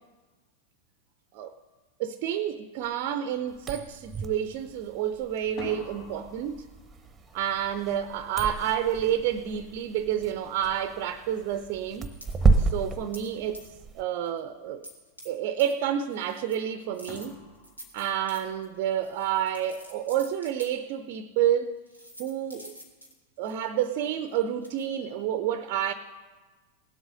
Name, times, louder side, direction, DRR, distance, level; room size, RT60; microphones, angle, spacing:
voice 1, 2.0-6.7 7.3-12.1 12.6-13.7 13.9-14.9 15.2-17.4 17.9-21.8 22.2-22.7 23.4-25.9, right 10 dB, 45° right, 0.6 m, -29 dB
sound 1, 2.8-3.0 3.3-3.9 5.4-10.2 11.9-12.0 12.4-13.3 17.1-18.8, left 2 dB, 50° left, 4.7 m, -48 dB
sound 2, 3.5-14.0, right 3 dB, 15° right, 0.9 m, -31 dB
sound 3, 11.9-12.4 13.1-13.3 13.5-13.9 14.3-14.4 14.8-15.3 15.6-15.7 16.1-16.6 16.9-20.7 21.4-21.5 21.9-24.9, equal, 85° left, 2.0 m, -48 dB
18.0 x 7.9 x 6.6 m
figure-of-eight pair, 90°, 0 cm